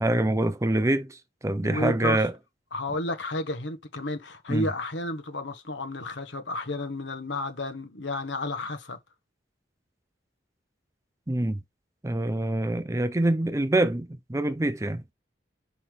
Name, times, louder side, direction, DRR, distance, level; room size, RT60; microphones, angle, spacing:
voice 1, 0.0-2.3 4.5-4.7 11.3-11.6 12.0-15.0, right 1 dB, 15° right, 0.5 m, -25 dB
voice 2, 1.6-2.2 2.7-9.0, left 2 dB, 75° left, 1.3 m, -32 dB
6.4 x 5.5 x 3.3 m
head